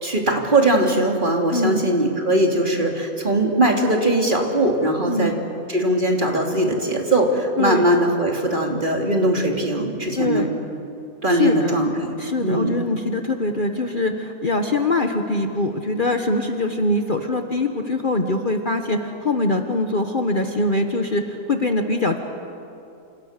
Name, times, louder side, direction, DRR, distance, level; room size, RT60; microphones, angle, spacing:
voice 1, 0.0-5.3 5.7-10.4 11.2-12.1 12.4-12.7, right 1 dB, 35° right, 1 dB, 3.0 m, -20 dB
voice 2, 1.5-1.8 5.1-5.3 7.6-7.8 10.2-10.5 11.3-11.8 12.2-22.2, left 2 dB, 35° left, 5 dB, 1.3 m, -23 dB
29.0 x 27.5 x 6.7 m, 2.7 s
omnidirectional pair, 1.6 m